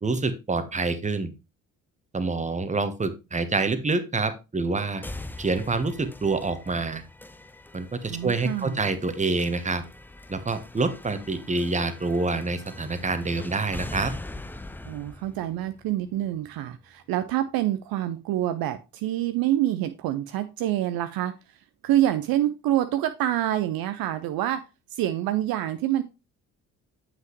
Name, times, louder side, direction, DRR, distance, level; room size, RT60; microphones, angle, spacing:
voice 1, 0.0-1.3 2.1-5.0 5.4-7.0 7.7-9.8 10.3-14.1, right 3 dB, 15° right, 1.1 m, -27 dB
sound 1, 5.0-17.0, left 2 dB, 5° left, 0.4 m, -42 dB
voice 2, 8.1-8.8 14.8-21.3 21.8-24.6 24.9-26.0, right 13 dB, 55° right, 0.6 m, -26 dB
7.5 x 5.8 x 3.0 m
hypercardioid pair, 45°, 41 cm